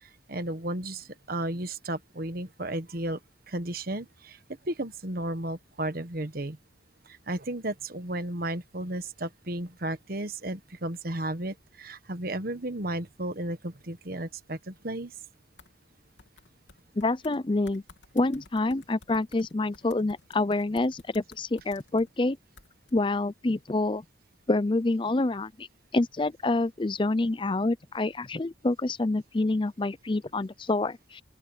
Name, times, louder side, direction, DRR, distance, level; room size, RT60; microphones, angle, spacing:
voice 1, 0.0-3.2 3.5-4.4 4.6-6.6 7.1-15.1, right 1 dB, 50° right, 1.4 m, -34 dB
sound 1, 15.6-15.7 16.2-17.4 17.7-22.1 22.6-22.9, left 3 dB, 75° left, 3.3 m, -54 dB
voice 2, 17.0-17.8 18.1-22.4 22.9-24.0 24.5-25.7 25.9-31.2, left 2 dB, 25° left, 0.5 m, -27 dB
open air
head